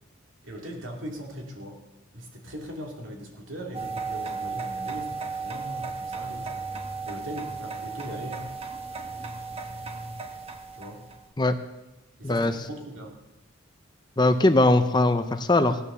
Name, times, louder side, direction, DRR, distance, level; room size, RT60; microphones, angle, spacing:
voice 1, 0.4-1.8 2.1-6.7 7.0-8.5 10.8-11.0 12.2-13.2, equal, 65° right, 1 dB, 2.8 m, -39 dB
sound 1, 3.7-11.2, right 4 dB, 30° right, 1.1 m, -35 dB
voice 2, 14.2-15.8, left 2 dB, 20° left, 9 dB, 0.7 m, -20 dB
17.0 x 9.9 x 6.9 m, 0.99 s
head